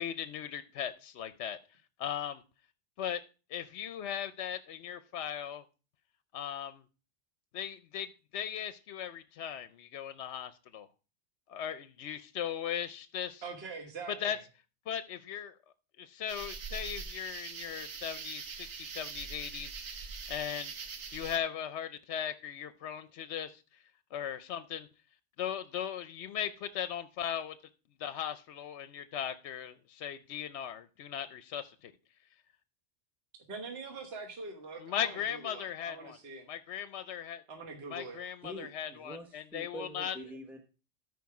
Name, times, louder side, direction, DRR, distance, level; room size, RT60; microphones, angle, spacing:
voice 1, 0.0-1.6 2.0-2.4 3.0-3.2 3.5-5.6 6.3-6.8 7.5-10.9 11.5-13.4 14.2-14.4 14.9-15.6 16.0-20.0 20.3-23.8 24.1-24.9 25.4-27.6 28.0-31.9 34.8-36.2 36.5-37.4 37.9-40.2, left 9 dB, 65° left, 0.9 m, -38 dB
voice 2, 13.4-14.4 33.5-36.5 37.5-38.2, right 4 dB, 55° right, 1.5 m, -44 dB
sound 1, 16.3-21.4, right 5 dB, 85° right, 1.5 m, -42 dB
voice 3, 38.4-40.6, right 1 dB, ahead, 0.9 m, -45 dB
13.5 x 5.0 x 4.7 m
omnidirectional pair, 1.3 m